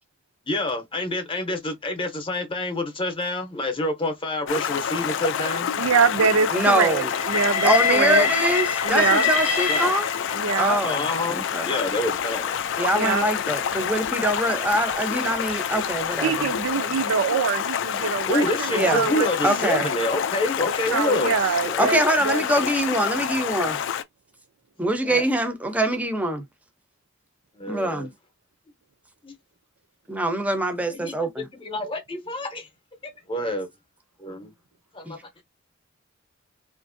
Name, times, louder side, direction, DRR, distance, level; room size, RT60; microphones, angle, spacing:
voice 1, 0.5-5.7 9.7-9.9 10.8-12.5 18.3-21.3 21.6-21.9 25.0-25.3 27.6-28.1 29.2-29.4 30.9-32.7 33.0-33.7 34.2-34.5 34.9-35.2, left 1 dB, 25° left, 0.7 m, -28 dB
Stream, 4.5-24.0, left 8 dB, 60° left, 0.3 m, -28 dB
voice 2, 5.8-8.3 8.8-9.3 10.3-10.8 12.9-13.3 16.2-19.9 20.9-22.4, right 5 dB, 75° right, 0.4 m, -24 dB
voice 3, 6.5-7.1 7.6-10.1 10.6-11.7 12.8-16.4 18.7-19.0 19.4-19.9 21.8-23.8 24.8-26.4 27.7-28.1 30.1-31.5 35.1-35.2, right 1 dB, 5° right, 0.5 m, -24 dB
Train, 7.1-10.5 11.4-16.6, left 5 dB, 90° left, 0.7 m, -28 dB
2.7 x 2.5 x 2.5 m
head